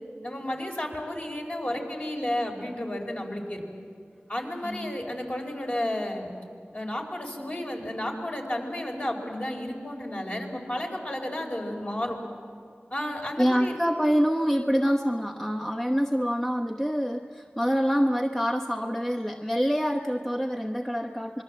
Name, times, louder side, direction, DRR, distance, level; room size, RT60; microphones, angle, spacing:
voice 1, 0.2-3.6 4.3-6.3 6.7-12.2 12.9-13.8, left 1 dB, 40° left, 0 dB, 4.5 m, -32 dB
voice 2, 4.6-5.0 13.4-21.4, equal, 10° left, 1 dB, 1.0 m, -26 dB
26.0 x 21.5 x 7.5 m, 2.3 s
wide cardioid pair, 45°, 4 cm